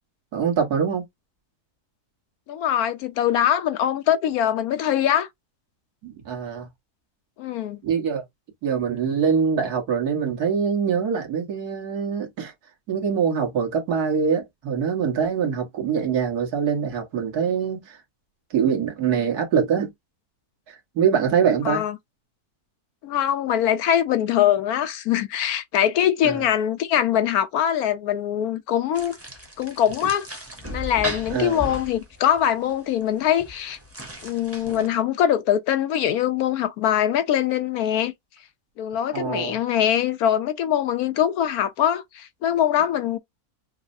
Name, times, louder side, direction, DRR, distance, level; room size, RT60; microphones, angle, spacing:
voice 1, 0.3-1.0 6.0-6.7 7.8-8.2 8.6-12.5 12.9-18.0 18.5-19.9 20.7-21.8 26.2-26.5 31.3-31.7 39.1-39.6, right 7 dB, 75° right, 1.8 m, -24 dB
voice 2, 2.5-5.3 7.4-7.8 21.6-22.0 23.0-29.2 29.6-30.3 30.7-33.8 34.2-38.1 38.8-43.2, left 10 dB, 75° left, 1.1 m, -22 dB
sound 1, 28.9-34.9, equal, 10° right, 0.8 m, -36 dB
5.6 x 2.1 x 2.6 m
omnidirectional pair, 1.6 m